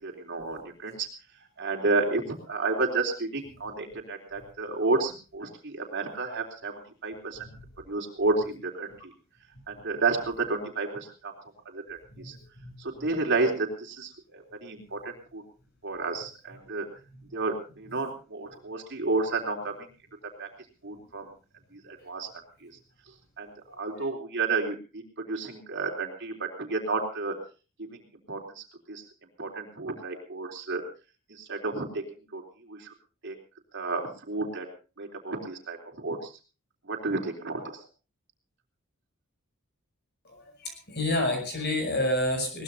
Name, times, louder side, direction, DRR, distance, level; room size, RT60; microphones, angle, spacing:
voice 1, 0.0-1.1 1.6-2.2 2.5-7.5 7.9-8.9 9.7-11.3 11.7-12.0 12.2-12.4 12.8-15.4 15.8-16.9 17.3-19.7 20.4-20.5 20.8-21.3 21.9-22.3 22.6-22.7 23.4-23.5 23.8-25.0 25.3-27.3 27.9-28.0 28.3-29.0 29.4-30.8 31.4-32.0 32.3-32.4 32.7-32.9 33.2-33.3 33.7-34.7 35.0-36.3 36.9-37.6, right 3 dB, 55° right, 2 dB, 3.6 m, -31 dB
voice 2, 12.3-12.7 23.7-24.1 40.3-42.6, left 1 dB, 50° left, 4 dB, 7.4 m, -30 dB
22.0 x 19.0 x 2.8 m, 0.35 s
head